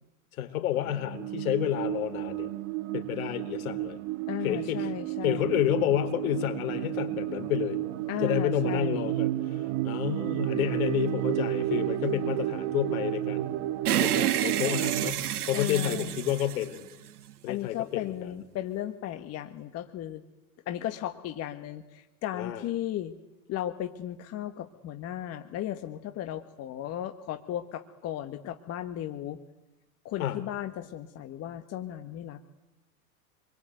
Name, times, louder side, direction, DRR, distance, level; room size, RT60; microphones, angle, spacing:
voice 1, 0.3-2.5 2.9-4.0 4.4-4.9 5.2-7.8 8.2-13.6 14.0-15.2 15.5-16.8 17.4-18.4 22.3-22.6 30.2-30.4, left 12 dB, 70° left, 9 dB, 4.2 m, -30 dB
sound 1, 0.8-15.1, right 15 dB, 50° right, 1.7 m, -32 dB
voice 2, 4.3-5.6 8.1-9.1 12.1-12.4 15.5-16.1 17.5-20.2 20.6-23.1 23.5-29.4 30.0-32.4, left 12 dB, 35° left, 8 dB, 1.6 m, -35 dB
sound 2, 13.8-17.3, right 11 dB, 85° right, 1.4 m, -29 dB
27.5 x 23.0 x 9.2 m, 0.97 s
hypercardioid pair, 125°, 44 cm